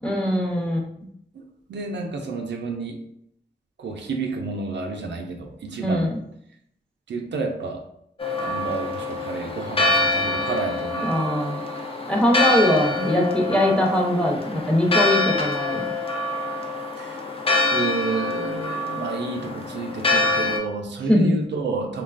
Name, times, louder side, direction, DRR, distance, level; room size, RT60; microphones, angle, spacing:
voice 1, 0.0-0.8 5.8-6.1 11.0-11.6 12.1-15.9 21.1-21.3, left 1 dB, 5° left, 0 dB, 0.8 m, -21 dB
voice 2, 1.7-3.0 3.8-6.1 7.1-7.8 8.4-11.2 17.0-17.2 17.7-22.0, right 3 dB, 75° right, 2 dB, 0.4 m, -30 dB
Church bell, 8.2-20.6, left 2 dB, 30° left, 0.5 m, -25 dB
3.1 x 2.2 x 2.4 m, 0.72 s
cardioid pair, 40°, 19 cm